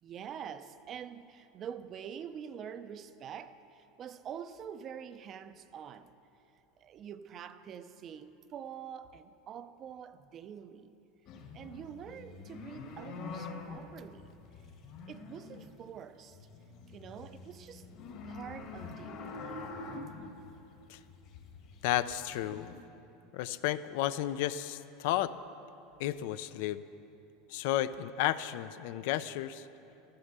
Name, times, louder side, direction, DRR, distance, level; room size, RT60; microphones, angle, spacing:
voice 1, 0.0-6.1 6.8-10.9 11.5-14.4 15.1-16.4 16.9-17.9 18.2-19.7, right 8 dB, 30° right, 12 dB, 0.5 m, -46 dB
sound 1, 11.3-16.0 16.3-22.7, left 3 dB, 45° left, 1.6 m, -46 dB
voice 2, 21.8-22.7 23.3-25.3 26.0-26.8 27.5-29.7, left 13 dB, 60° left, 14 dB, 0.5 m, -32 dB
13.5 x 13.0 x 6.7 m, 2.9 s
supercardioid pair, 165°, 0 cm